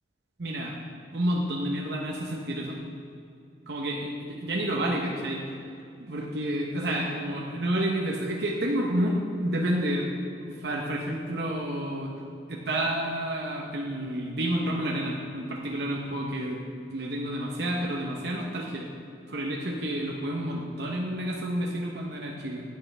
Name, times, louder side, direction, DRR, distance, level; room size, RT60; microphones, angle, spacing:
voice 1, 0.4-0.7 1.1-2.8 3.7-5.4 6.0-10.1 10.4-12.1 12.5-16.6 16.9-18.9 19.3-22.6, right 1 dB, 60° right, -1 dB, 0.9 m, -30 dB
10.5 x 9.6 x 3.3 m, 2.4 s
head